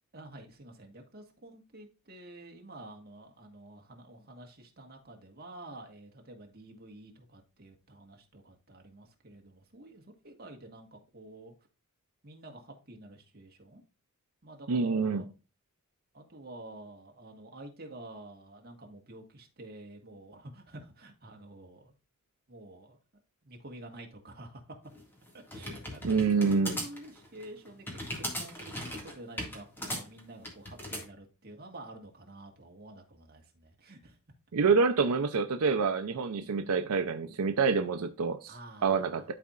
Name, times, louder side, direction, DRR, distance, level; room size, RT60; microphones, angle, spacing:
voice 1, 0.1-11.5 12.2-13.8 14.4-15.3 16.1-21.9 22.5-23.0 23.4-24.8 25.3-34.2 36.8-37.3 38.5-39.2, right 1 dB, 45° right, 1.6 m, -49 dB
voice 2, 14.7-15.2 26.0-26.8 34.5-38.6 38.8-39.3, right 5 dB, 85° right, 0.6 m, -27 dB
sound 1, 24.9-31.1, equal, 10° left, 1.9 m, -38 dB
12.0 x 4.2 x 2.4 m
head